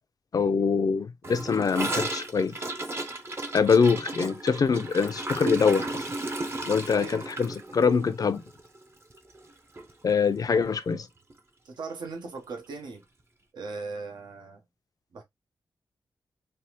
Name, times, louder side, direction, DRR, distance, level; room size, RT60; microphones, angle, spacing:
voice 1, 0.3-2.6 3.5-6.0 6.7-8.4 10.0-11.1, left 5 dB, 55° left, 0.5 m, -24 dB
Gurgling / Toilet flush, 1.2-9.5 9.8-9.9 10.2-10.6 10.9-11.0 11.3-11.4 12.3-12.4, right 2 dB, 35° right, 0.6 m, -34 dB
voice 2, 11.6-13.0 13.5-14.6 15.1-15.2, right 4 dB, 80° right, 0.8 m, -38 dB
3.3 x 2.0 x 2.8 m
cardioid pair, 50°, 8 cm